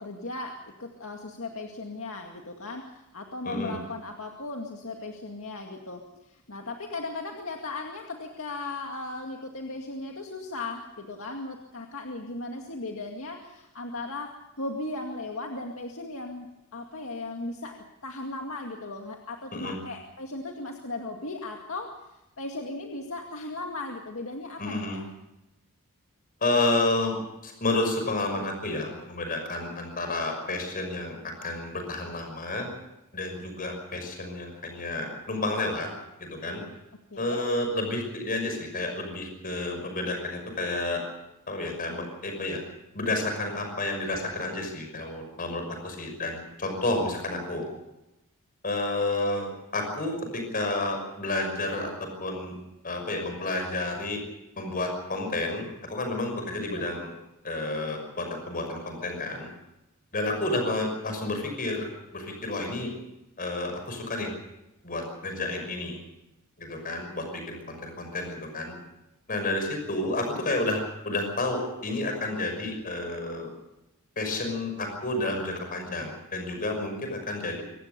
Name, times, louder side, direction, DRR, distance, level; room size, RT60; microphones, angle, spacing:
voice 1, 0.0-21.9 22.4-25.0 37.1-37.5 56.6-57.0 61.1-61.4, left 2 dB, 65° left, 2 dB, 2.2 m, -37 dB
voice 2, 3.4-3.8 19.5-19.7 24.6-25.0 26.4-27.2 27.4-31.1 31.4-32.7 33.1-35.9 36.2-36.6 37.2-41.0 41.5-42.6 42.9-47.6 48.6-51.9 52.2-52.5 52.8-54.2 54.6-57.1 57.4-59.5 60.1-61.9 62.1-62.9 63.4-64.3 64.8-66.0 66.6-68.7 69.3-73.5 74.2-77.6, left 2 dB, 40° left, 4 dB, 6.0 m, -30 dB
24.5 x 18.5 x 6.8 m, 0.93 s
head